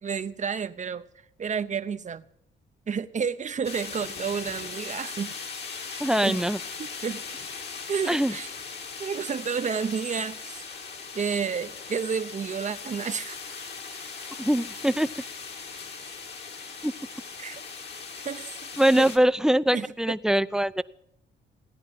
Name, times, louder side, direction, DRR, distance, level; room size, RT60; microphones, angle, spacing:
voice 1, 0.0-1.0 1.4-2.2 2.9-5.3 6.2-6.4 6.8-7.2 7.9-8.5 9.0-10.7 11.1-13.4 17.4-17.6 18.2-18.7 19.0-19.1 19.7-19.9, right 6 dB, 40° right, 0.8 m, -30 dB
sound 1, 3.6-19.2, left 5 dB, 55° left, 2.2 m, -39 dB
voice 2, 6.0-6.6 8.1-8.3 14.4-15.1 16.8-16.9 18.8-20.8, right 1 dB, 5° right, 0.6 m, -22 dB
17.5 x 10.5 x 7.7 m
cardioid pair, 90°, 20 cm